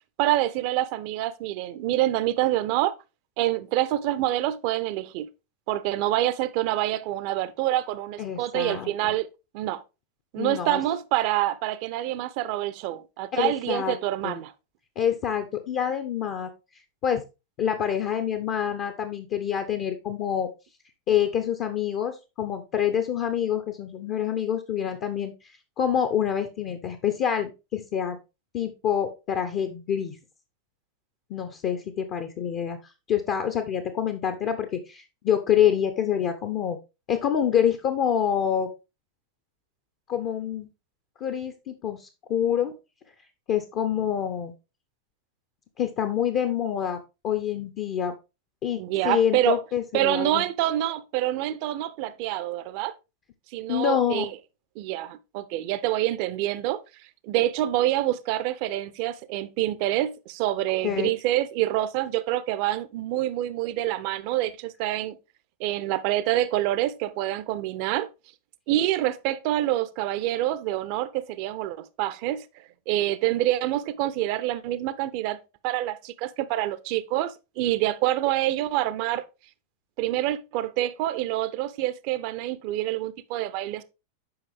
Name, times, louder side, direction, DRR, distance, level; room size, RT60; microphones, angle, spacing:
voice 1, 0.2-2.9 3.4-5.3 5.7-9.8 10.3-14.5 48.8-49.6 49.9-52.9 53.5-54.3 54.8-56.8 57.2-65.2 65.6-68.1 68.7-79.2 80.0-83.8, right 14 dB, 45° right, 0.6 m, -26 dB
voice 2, 8.2-9.1 10.4-10.8 13.3-14.0 14.2-14.4 15.0-16.5 17.0-17.2 17.6-20.5 21.1-28.2 28.5-30.2 31.3-32.8 33.1-36.8 37.1-38.7 40.1-40.7 41.2-42.7 43.5-44.5 45.8-48.1 48.6-50.4 53.7-54.3 60.8-61.1, left 9 dB, 40° left, 0.8 m, -26 dB
7.9 x 5.4 x 3.5 m
figure-of-eight pair, 90°, 0 cm